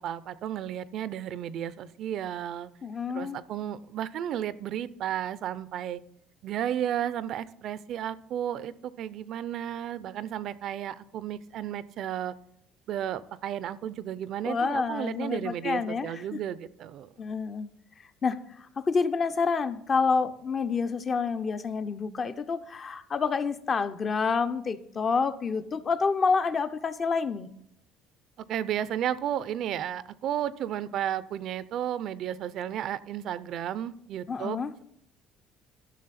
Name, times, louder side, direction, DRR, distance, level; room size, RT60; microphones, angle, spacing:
voice 1, 0.0-2.7 3.1-6.0 6.4-12.3 12.9-17.1 28.5-34.8, right 10 dB, 60° right, 0.4 m, -33 dB
voice 2, 2.8-3.4 14.4-16.4 17.2-17.7 18.2-27.5 34.3-34.7, left 5 dB, 35° left, 0.6 m, -28 dB
12.5 x 6.2 x 4.2 m
cardioid pair, 115°, 0 cm